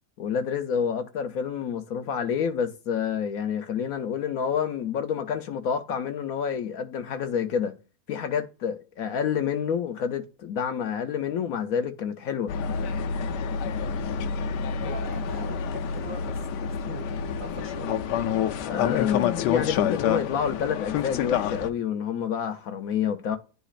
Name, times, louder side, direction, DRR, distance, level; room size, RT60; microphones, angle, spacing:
voice 1, 0.2-7.7 8.1-12.5 18.6-23.4, left 7 dB, 65° left, 1.0 m, -28 dB
sound 1, 12.5-21.7, left 7 dB, 90° left, 1.2 m, -28 dB
voice 2, 14.8-18.0, right 2 dB, 45° right, 0.7 m, -42 dB
11.0 x 3.9 x 2.4 m
omnidirectional pair, 1.8 m